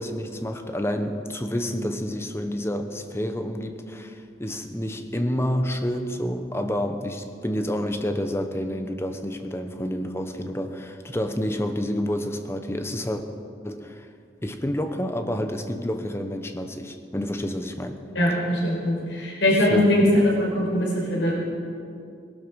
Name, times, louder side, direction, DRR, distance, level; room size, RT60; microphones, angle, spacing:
voice 1, 0.0-13.2 13.6-14.1 14.4-18.0 19.7-19.9, equal, 15° left, 7 dB, 0.9 m, -29 dB
voice 2, 18.2-20.1 20.4-21.3, left 1 dB, 85° left, -3 dB, 5.3 m, -22 dB
18.5 x 12.0 x 6.4 m, 2.4 s
head